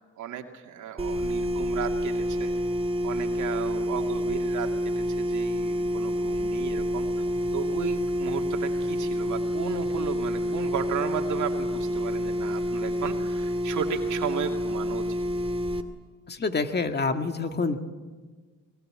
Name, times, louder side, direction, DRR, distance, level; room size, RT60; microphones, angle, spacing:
voice 1, 0.2-2.5 3.0-7.1 7.5-15.2, right 8 dB, 75° right, 4 dB, 2.4 m, -34 dB
sound 1, 1.0-15.8, equal, 20° right, 2.2 m, -28 dB
sound 2, 7.2-12.5, equal, 5° left, 5.9 m, -51 dB
voice 2, 16.3-17.8, left 4 dB, 35° left, 7 dB, 1.9 m, -27 dB
24.5 x 19.0 x 8.8 m, 1.4 s
cardioid pair, 90°, 30 cm